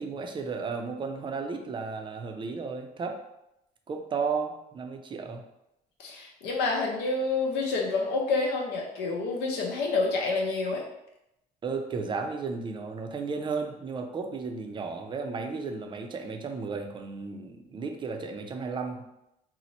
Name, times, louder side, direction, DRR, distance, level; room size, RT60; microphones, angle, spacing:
voice 1, 0.0-3.2 3.9-5.4 11.6-19.0, right 4 dB, 30° right, 5 dB, 0.4 m, -34 dB
voice 2, 6.0-10.8, left 3 dB, 90° left, -1 dB, 0.8 m, -28 dB
2.9 x 2.0 x 4.0 m, 0.85 s
cardioid pair, 110°, 17 cm